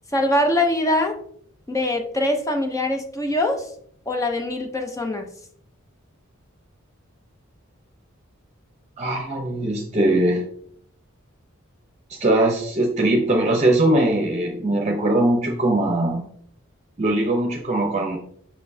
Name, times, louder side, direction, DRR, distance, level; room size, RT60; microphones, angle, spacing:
voice 1, 0.1-1.2 1.7-3.7 4.1-5.3, left 1 dB, 15° left, 4 dB, 0.8 m, -23 dB
voice 2, 9.0-10.5 12.1-16.2 17.0-18.2, right 1 dB, 30° right, 0 dB, 0.8 m, -21 dB
6.8 x 5.9 x 2.8 m, 0.66 s
head